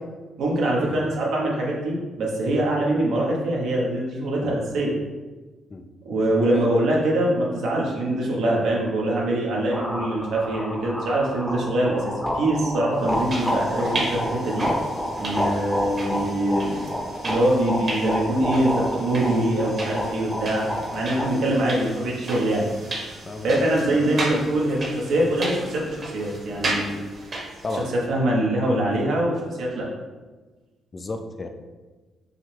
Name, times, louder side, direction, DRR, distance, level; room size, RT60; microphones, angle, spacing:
voice 1, 0.4-4.9 6.0-12.0 12.3-14.7 15.1-16.8 17.2-22.7 23.4-27.0 27.7-29.9, right 1 dB, 75° right, -3 dB, 1.2 m, -23 dB
sound 1, 9.7-21.3, equal, 5° left, 0.8 m, -29 dB
sound 2, 13.0-27.9, right 2 dB, 45° right, 1.3 m, -34 dB
voice 2, 23.2-24.2 27.6-27.9 30.9-31.5, left 2 dB, 35° left, 6 dB, 0.4 m, -33 dB
6.2 x 2.3 x 3.4 m, 1.3 s
cardioid pair, 90°, 0 cm